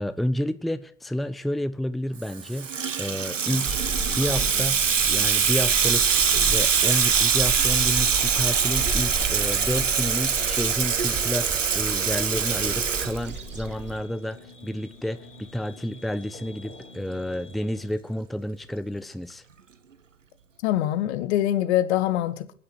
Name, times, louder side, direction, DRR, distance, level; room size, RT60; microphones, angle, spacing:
voice 1, 0.0-4.8 5.1-14.4 14.6-19.4, left 1 dB, ahead, 0.9 m, -30 dB
Water tap faucet / Sink (filling or washing), 2.3-13.7, right 6 dB, 85° right, 0.9 m, -23 dB
sound 1, 3.4-17.9, left 3 dB, 75° left, 2.6 m, -47 dB
sound 2, 3.7-14.0, right 2 dB, 30° right, 3.7 m, -35 dB
voice 2, 20.6-22.5, left 13 dB, 60° left, 1.7 m, -24 dB
25.5 x 9.9 x 4.5 m
figure-of-eight pair, 70°, 37 cm